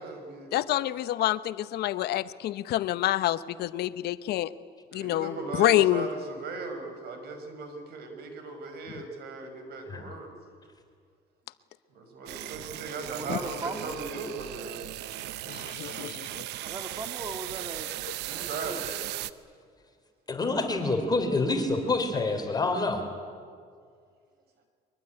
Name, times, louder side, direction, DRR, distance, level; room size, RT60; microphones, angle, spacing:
voice 1, 0.0-0.6 4.9-10.3 11.9-14.9 18.2-18.9, right 3 dB, 70° right, 6 dB, 5.6 m, -38 dB
voice 2, 0.5-4.5 4.9-6.1 13.3-13.4 15.5-16.4, left 14 dB, 75° left, 14 dB, 1.0 m, -27 dB
sound 1, 12.3-19.3, right 14 dB, 85° right, 0.9 m, -37 dB
voice 3, 13.0-14.0 16.6-17.9 18.3-18.8, right 3 dB, 25° right, 6 dB, 2.0 m, -38 dB
voice 4, 20.3-23.0, left 3 dB, 25° left, 5 dB, 3.7 m, -27 dB
23.5 x 22.5 x 9.7 m, 2.1 s
cardioid pair, 110°, 17 cm